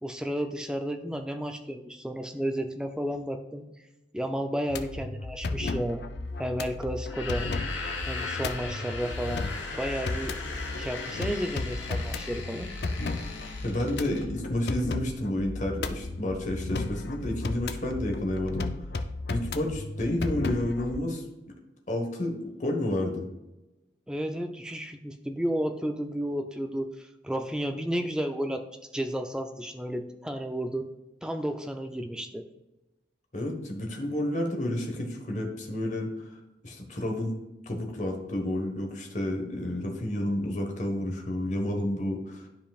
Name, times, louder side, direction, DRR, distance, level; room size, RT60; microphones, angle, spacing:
voice 1, 0.0-3.7 4.1-6.0 6.4-7.5 8.1-9.4 9.8-10.3 10.8-12.7 24.1-28.7 28.9-30.9 31.2-32.5, equal, 5° right, 5 dB, 0.4 m, -32 dB
sound 1, 4.7-21.0, left 3 dB, 60° left, 0.5 m, -35 dB
sound 2, 7.0-14.3, left 3 dB, 85° left, 1.4 m, -38 dB
voice 2, 13.6-18.7 19.3-21.2 21.9-23.3 33.3-36.1 36.6-37.4 37.7-42.5, left 1 dB, 40° left, 2 dB, 1.2 m, -30 dB
11.5 x 5.1 x 2.4 m, 0.99 s
head